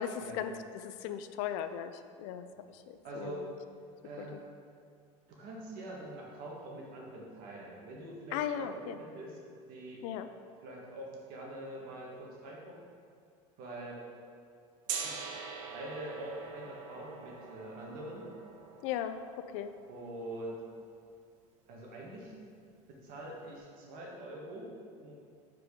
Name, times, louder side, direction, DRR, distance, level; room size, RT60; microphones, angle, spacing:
voice 1, 0.0-1.9 2.2-2.4 2.9-3.5 4.2-4.3 8.3-9.0 10.0-10.3 18.8-19.2 19.5-19.7, left 9 dB, 75° left, 10 dB, 0.4 m, -37 dB
voice 2, 3.0-3.5 4.0-4.4 5.3-8.7 9.0-9.4 9.7-10.0 10.6-12.7 13.6-14.0 15.0-15.1 15.6-18.3 19.9-20.6 21.7-22.4 22.9-25.1, right 1 dB, 65° right, -2 dB, 1.6 m, -44 dB
Gong, 14.9-20.8, right 6 dB, 80° right, 0.8 m, -44 dB
5.0 x 4.5 x 5.1 m, 2.2 s
supercardioid pair, 105°, 16 cm